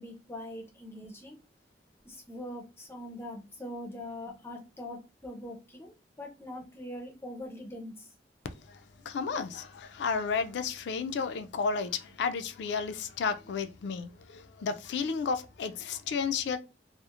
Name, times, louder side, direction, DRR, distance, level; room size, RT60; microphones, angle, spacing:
voice 1, 0.0-1.4 2.0-8.1, left 1 dB, 15° left, 0.4 m, -42 dB
voice 2, 9.1-16.6, left 5 dB, 75° left, 0.3 m, -32 dB
2.8 x 2.0 x 2.4 m
head